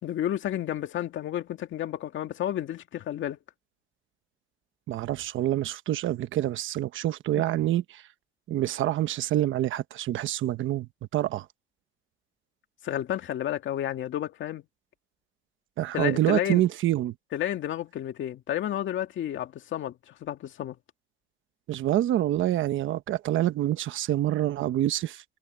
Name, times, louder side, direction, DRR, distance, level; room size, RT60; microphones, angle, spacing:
voice 1, 0.0-3.4 12.8-14.6 15.9-16.6 17.3-20.8, left 11 dB, 75° left, 2.2 m, -31 dB
voice 2, 4.9-8.0 8.5-11.5 15.8-17.1 21.7-25.2, right 13 dB, 80° right, 1.1 m, -26 dB
cardioid pair, 90°, 20 cm